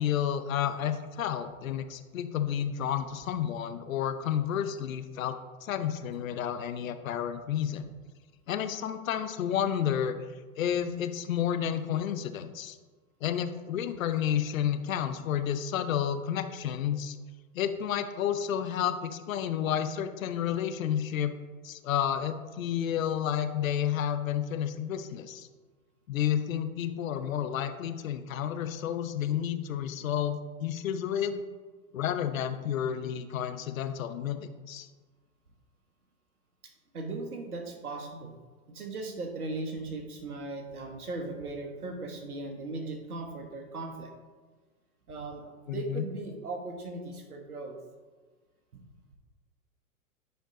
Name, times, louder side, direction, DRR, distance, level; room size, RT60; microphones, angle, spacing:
voice 1, 0.0-7.8 8.5-10.2 10.6-12.8 13.2-17.2 17.5-21.4 21.6-25.5 26.1-31.4 31.9-34.9 45.7-46.0, left 9 dB, 65° left, 9 dB, 0.8 m, -31 dB
voice 2, 36.6-38.4 38.7-44.1 45.1-47.8 48.7-48.8, right 2 dB, 85° right, 3 dB, 1.5 m, -38 dB
9.4 x 4.5 x 3.9 m, 1.3 s
hypercardioid pair, 110°, 43 cm